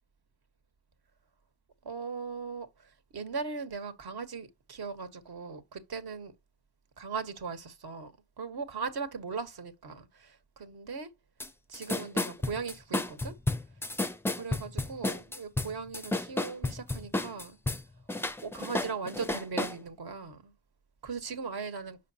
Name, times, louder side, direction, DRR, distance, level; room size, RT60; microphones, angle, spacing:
voice 1, 1.8-2.7 3.1-6.3 7.0-8.1 8.4-11.1 11.7-13.4 14.3-17.6 18.4-20.5 21.0-22.0, right 5 dB, 55° right, 1.5 m, -38 dB
sound 1, 11.4-11.5 11.7-17.8 18.1-19.8, left 2 dB, 5° left, 0.4 m, -31 dB
6.6 x 5.1 x 2.8 m
cardioid pair, 80°, 45 cm